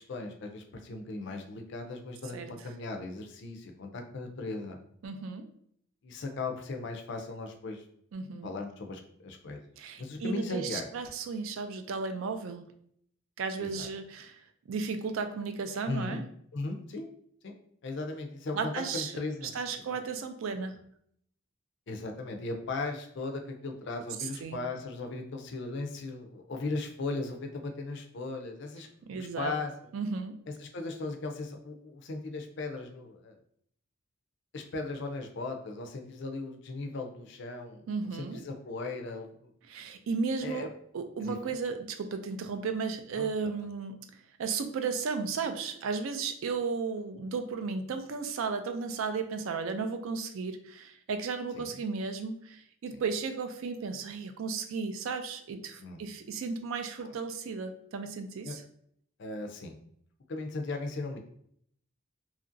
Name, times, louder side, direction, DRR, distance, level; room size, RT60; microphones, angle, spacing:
voice 1, 0.1-4.8 6.0-7.8 8.4-9.6 10.0-10.8 13.6-13.9 15.9-16.2 16.5-17.1 17.4-17.5 17.8-19.5 21.9-28.9 29.1-29.7 30.6-33.3 34.5-37.9 38.1-39.5 40.4-40.7 41.2-41.4 43.1-43.5 51.5-51.7 55.8-56.0 57.0-57.1 58.4-58.5 59.2-59.8 60.3-61.2, left 3 dB, 55° left, 4 dB, 0.4 m, -37 dB
voice 2, 5.0-5.5 8.1-8.5 9.8-12.6 13.4-16.2 18.5-19.1 19.4-20.8 24.2-24.6 29.0-29.5 29.9-30.4 37.9-38.4 39.6-58.6, right 5 dB, 65° right, 7 dB, 0.3 m, -34 dB
2.8 x 2.5 x 2.5 m, 0.66 s
head